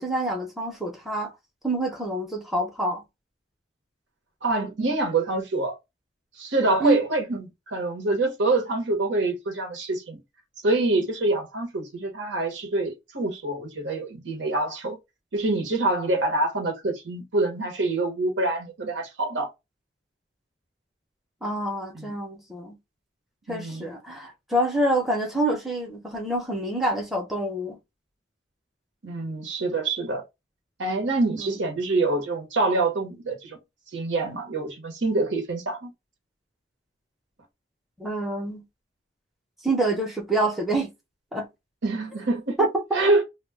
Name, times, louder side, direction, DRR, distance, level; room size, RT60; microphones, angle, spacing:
voice 1, 0.0-1.3 1.6-3.0 6.8-7.0 21.4-22.8 23.5-27.8 31.4-31.6 38.0-38.6 39.6-40.9 41.3-41.5 42.6-42.7, right 1 dB, ahead, 0.6 m, -27 dB
voice 2, 4.4-5.8 6.4-10.2 10.6-15.0 15.3-19.5 21.9-22.1 23.5-23.9 29.0-30.2 30.8-33.6 33.9-35.9 41.8-42.5 42.9-43.2, right 2 dB, 80° right, 0.9 m, -26 dB
2.2 x 2.1 x 3.2 m
head